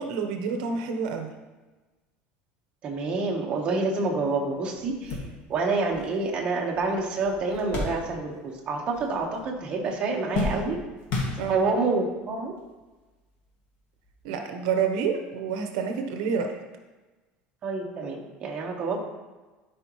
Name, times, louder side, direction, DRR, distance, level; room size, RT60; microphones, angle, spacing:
voice 1, 0.0-1.3 11.4-11.5 14.2-16.6, right 6 dB, 80° right, 5 dB, 0.9 m, -28 dB
voice 2, 2.8-5.2 5.5-10.8 11.5-12.5 17.6-19.0, right 3 dB, 25° right, -1 dB, 1.1 m, -27 dB
sound 1, 4.3-4.4 4.8-8.6 8.8-9.5 9.8-11.9 12.7-12.8 14.1-14.2, left 2 dB, 55° left, 1.9 m, -34 dB
12.0 x 5.1 x 3.1 m, 1.2 s
cardioid pair, 170°, 4 cm